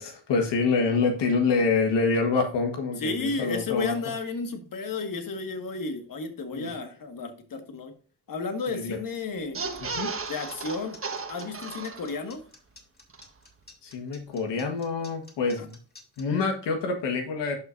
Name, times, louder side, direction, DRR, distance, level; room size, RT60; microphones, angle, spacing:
voice 1, 0.0-4.0 6.5-6.7 8.7-9.0 9.8-10.1 13.8-15.8 16.2-17.5, left 4 dB, 90° left, 4 dB, 1.5 m, -26 dB
voice 2, 3.0-7.9 8.3-9.6 10.3-11.0 11.3-12.4, left 4 dB, 50° left, 6 dB, 1.8 m, -32 dB
sound 1, 9.4-12.4 12.8-12.9 13.1-13.2, right 4 dB, 30° right, 1.4 m, -35 dB
sound 2, 10.0-16.2, left 3 dB, 25° left, 3.0 m, -51 dB
11.0 x 5.8 x 2.6 m, 0.39 s
cardioid pair, 70°, 41 cm